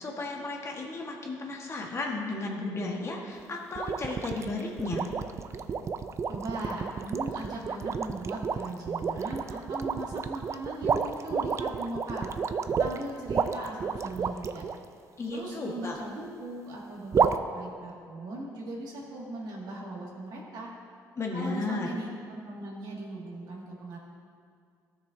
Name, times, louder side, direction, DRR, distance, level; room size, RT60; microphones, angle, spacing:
voice 1, 0.0-5.1 15.2-16.0 21.2-21.9, left 3 dB, 40° left, 0 dB, 1.4 m, -34 dB
sound 1, 3.8-14.8 17.1-17.4, right 6 dB, 40° right, 0.4 m, -30 dB
voice 2, 6.3-12.3 12.8-14.6 15.3-20.7 21.3-24.0, right 1 dB, 65° right, -3 dB, 2.0 m, -39 dB
13.5 x 6.6 x 2.7 m, 2.2 s
supercardioid pair, 80°, 8 cm